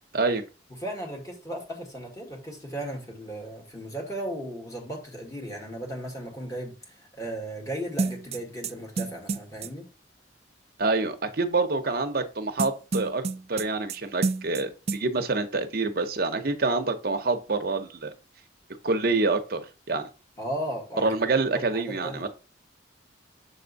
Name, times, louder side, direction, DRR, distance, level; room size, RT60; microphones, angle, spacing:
voice 1, 0.8-9.9 20.4-21.1 21.5-22.2, right 1 dB, 20° left, 1.7 m, -36 dB
sound 1, 8.0-9.7 12.6-14.0 14.2-14.6 14.9-15.0, right 4 dB, 35° right, 0.3 m, -29 dB
voice 2, 10.8-18.1 18.8-20.1 21.0-22.3, right 3 dB, 50° right, 0.7 m, -27 dB
7.1 x 3.5 x 4.0 m
head